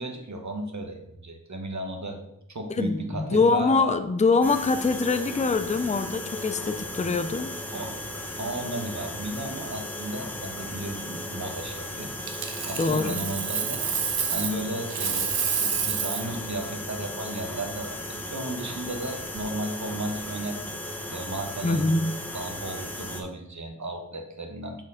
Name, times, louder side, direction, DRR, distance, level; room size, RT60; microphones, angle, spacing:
voice 1, 0.0-2.2 2.5-3.9 7.0-7.2 7.7-8.0 8.3-13.8 14.3-20.6 21.1-22.0 22.3-24.8, right 1 dB, 50° right, 1.2 m, -34 dB
voice 2, 2.8-7.5 12.8-13.3 21.6-22.1, left 3 dB, 20° left, 0.4 m, -24 dB
sound 1, 4.4-23.2, left 1 dB, 5° left, 1.0 m, -36 dB
Coin (dropping), 12.2-14.6 14.9-16.3 19.2-19.4, right 7 dB, 80° right, 0.7 m, -29 dB
6.2 x 4.7 x 4.9 m
wide cardioid pair, 80°, 37 cm